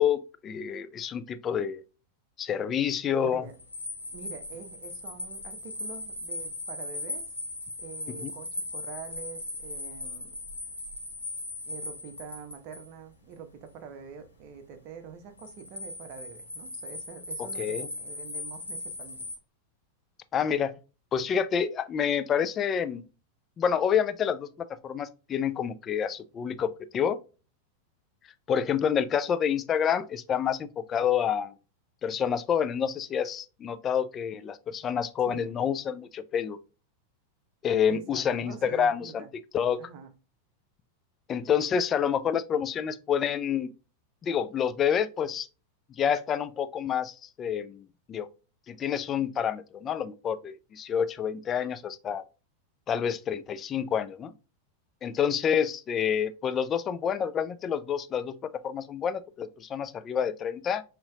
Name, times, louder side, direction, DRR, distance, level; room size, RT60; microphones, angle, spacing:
voice 1, 0.0-1.8 2.4-3.4 8.2-8.3 17.6-17.9 20.3-20.7 21.1-23.0 23.6-27.2 28.5-31.5 32.0-36.6 37.6-39.2 39.5-39.8 41.3-43.7 44.2-45.5 46.0-48.3 48.7-52.2 52.9-54.3 55.0-60.8, left 8 dB, 25° left, 0.4 m, -28 dB
voice 2, 3.2-3.6 4.1-7.3 7.8-10.4 11.7-19.2 35.3-35.5 37.9-39.3 39.8-40.1, right 6 dB, 40° right, 0.8 m, -45 dB
sound 1, 3.5-12.9 15.4-19.4, left 2 dB, 80° left, 1.0 m, -38 dB
5.4 x 2.9 x 2.3 m
figure-of-eight pair, 90°, 0 cm